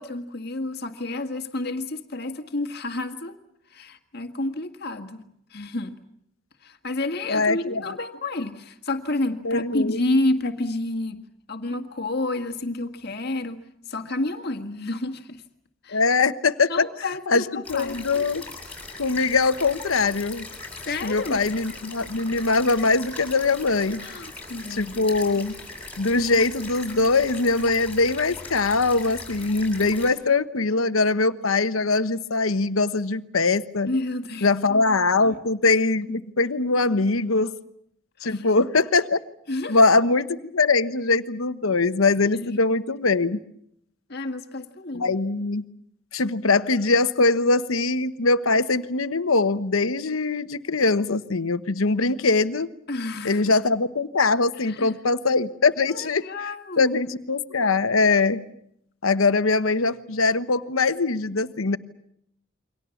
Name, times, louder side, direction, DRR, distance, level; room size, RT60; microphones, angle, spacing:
voice 1, 0.0-3.4 3.7-5.2 5.5-6.0 6.6-11.2 11.5-13.6 13.9-15.4 15.8-16.0 16.7-18.0 20.8-21.4 24.0-25.1 33.9-34.5 35.2-35.4 38.2-38.5 39.5-39.9 42.4-42.7 44.1-45.0 52.9-53.4 54.6-55.0 55.9-57.0, left 2 dB, 50° left, 6 dB, 1.8 m, -30 dB
voice 2, 7.3-8.0 9.4-10.0 15.9-16.8 17.3-18.4 19.0-20.5 21.0-24.0 24.7-25.6 26.0-33.9 34.4-37.5 38.2-39.2 39.7-43.4 44.9-45.6 46.1-52.7 53.2-56.5 56.8-58.4 59.0-61.8, left 3 dB, 85° left, 11 dB, 1.1 m, -22 dB
sound 1, 17.6-30.1, left 3 dB, 10° left, 7.1 m, -40 dB
29.0 x 24.0 x 7.2 m, 0.75 s
head